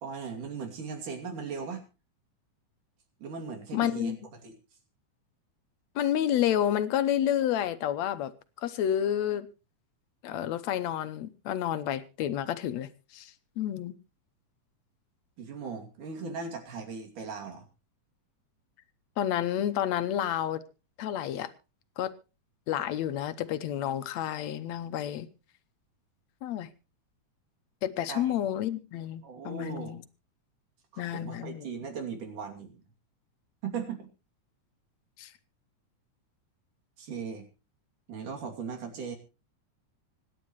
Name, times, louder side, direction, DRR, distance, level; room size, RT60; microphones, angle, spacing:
voice 1, 0.0-1.8 3.2-4.5 15.4-17.7 28.1-28.4 29.2-30.0 30.9-32.8 33.6-34.1 37.0-37.5 38.1-39.2, right 5 dB, 85° right, 4.2 m, -38 dB
voice 2, 3.7-4.2 6.0-8.3 8.6-9.5 10.2-12.9 13.1-13.9 19.2-20.6 21.0-21.5 22.0-22.1 22.7-25.3 26.4-26.7 27.8-30.0 31.0-31.7 35.2-35.3, left 10 dB, 70° left, 1.9 m, -30 dB
25.5 x 10.5 x 3.1 m
omnidirectional pair, 3.5 m